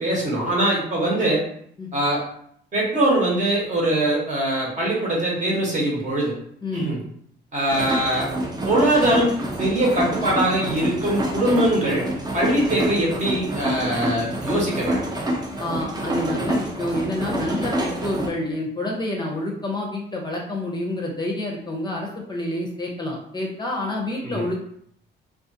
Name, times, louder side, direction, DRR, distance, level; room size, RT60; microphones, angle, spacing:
voice 1, 0.0-1.4 1.9-2.2 2.7-6.3 6.7-7.0 7.5-8.3 8.6-12.0 12.3-15.0 24.2-24.4, right 1 dB, 40° right, -3 dB, 1.1 m, -22 dB
sound 1, 7.7-18.3, right 1 dB, 20° right, 0.5 m, -27 dB
voice 2, 15.6-24.6, left 1 dB, 20° left, -2 dB, 0.6 m, -28 dB
2.4 x 2.4 x 2.6 m, 0.67 s
cardioid pair, 90°, 20 cm